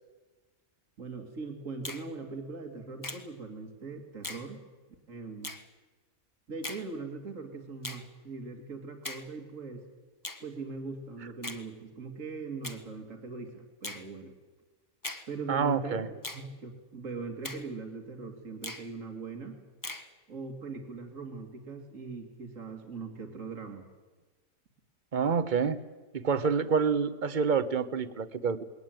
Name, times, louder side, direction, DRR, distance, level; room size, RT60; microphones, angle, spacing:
voice 1, 1.0-4.6 5.1-5.5 6.5-9.8 10.4-14.3 15.3-19.6 20.3-23.8, right 4 dB, 70° right, 4 dB, 2.7 m, -40 dB
Finger snapping, 1.8-2.1 3.0-3.3 4.2-4.5 5.4-5.6 6.6-6.9 7.8-8.1 9.0-9.3 10.2-10.4 11.4-11.6 12.6-12.8 13.8-14.1 15.0-15.3 16.2-16.5 17.4-17.7 18.6-18.9 19.8-20.1, left 2 dB, 15° left, 1.0 m, -39 dB
voice 2, 15.5-16.1 25.1-25.8 26.1-28.6, right 6 dB, 40° right, 14 dB, 1.0 m, -27 dB
21.5 x 18.0 x 9.1 m, 1.3 s
omnidirectional pair, 1.4 m